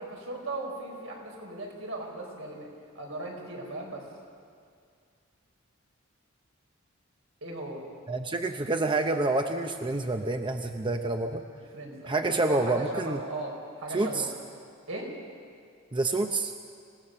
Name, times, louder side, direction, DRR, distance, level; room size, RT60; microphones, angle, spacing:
voice 1, 0.0-2.7 3.0-4.1 7.4-7.8 11.7-12.1 12.4-14.3 14.9-15.1, right 2 dB, 80° right, -1 dB, 5.2 m, -37 dB
voice 2, 8.1-11.4 12.1-13.2 13.9-14.3 15.9-16.5, right 2 dB, 25° right, 5 dB, 0.7 m, -28 dB
26.5 x 16.5 x 6.7 m, 2.2 s
head